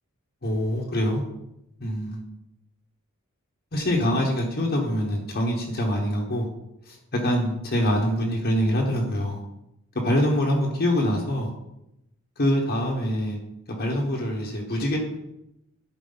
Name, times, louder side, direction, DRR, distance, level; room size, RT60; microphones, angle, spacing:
voice 1, 0.4-1.2 1.8-2.2 3.7-6.5 6.9-9.4 10.0-11.5 12.4-13.4 13.8-15.0, equal, 45° left, -1 dB, 1.3 m, -24 dB
11.5 x 4.7 x 4.0 m, 0.85 s
head